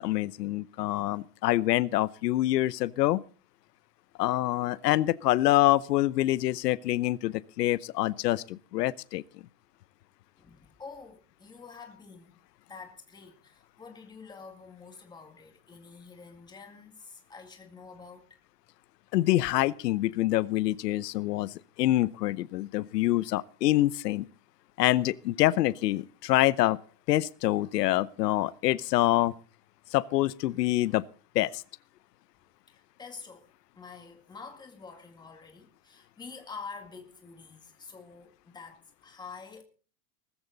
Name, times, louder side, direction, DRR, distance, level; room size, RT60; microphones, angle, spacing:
voice 1, 0.0-3.2 4.2-9.2 19.1-24.2 24.8-26.8 27.1-29.3 29.9-31.0 31.3-31.6, left 16 dB, 85° left, 0.9 m, -26 dB
voice 2, 10.4-12.4 12.7-18.3 32.7-33.5 33.8-39.6, left 5 dB, 10° left, 2.0 m, -47 dB
19.0 x 14.5 x 4.0 m
supercardioid pair, 170°, 48 cm